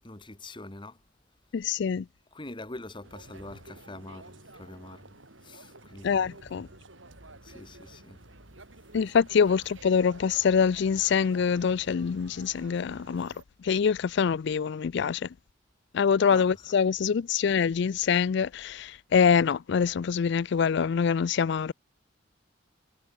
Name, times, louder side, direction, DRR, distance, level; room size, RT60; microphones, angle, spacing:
voice 1, 0.0-1.0 2.3-6.5 7.4-8.2 13.2-13.3 16.3-16.6, left 2 dB, 25° left, 1.8 m, -45 dB
voice 2, 1.5-2.1 6.0-6.7 8.9-13.3 13.6-15.3 15.9-21.7, left 6 dB, 60° left, 0.4 m, -25 dB
sound 1, 3.0-13.4, right 2 dB, 70° right, 5.8 m, -50 dB
head